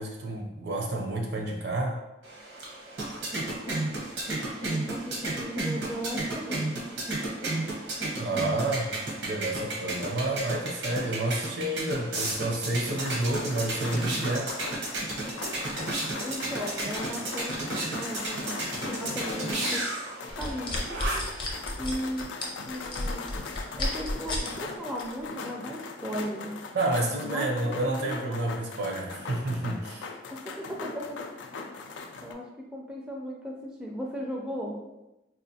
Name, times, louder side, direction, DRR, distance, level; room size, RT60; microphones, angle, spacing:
voice 1, 0.0-2.0 8.2-14.5 26.7-30.1, right 2 dB, 60° right, 0 dB, 0.5 m, -30 dB
sound 1, 2.2-21.4, right 2 dB, 85° right, 0.9 m, -33 dB
voice 2, 4.7-6.7 16.2-19.8 20.3-21.3 21.8-22.3 22.7-23.3 23.8-26.6 27.2-27.5 27.8-28.1 30.3-31.2 31.6-31.8 32.2-34.8, equal, 5° right, -1 dB, 0.4 m, -36 dB
sound 2, 12.8-32.3, left 4 dB, 85° left, 0.4 m, -40 dB
sound 3, 20.3-24.5 25.0-25.2, left 1 dB, 30° left, 0.6 m, -32 dB
4.1 x 2.4 x 2.7 m, 0.96 s
head